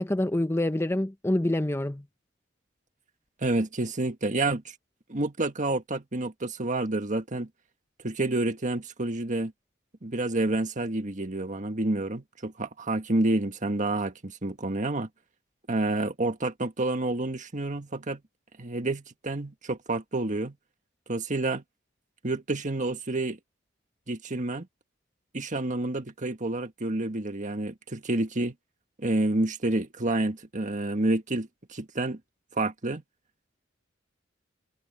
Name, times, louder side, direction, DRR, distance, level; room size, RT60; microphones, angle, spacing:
voice 1, 0.0-2.0, left 1 dB, 15° left, 0.7 m, -26 dB
voice 2, 3.4-4.7 5.1-7.5 8.0-9.5 10.0-15.1 15.7-18.2 18.6-20.5 21.1-21.6 22.2-23.4 24.1-24.7 25.3-28.5 29.0-32.2 32.5-33.0, right 2 dB, 40° right, 1.6 m, -29 dB
head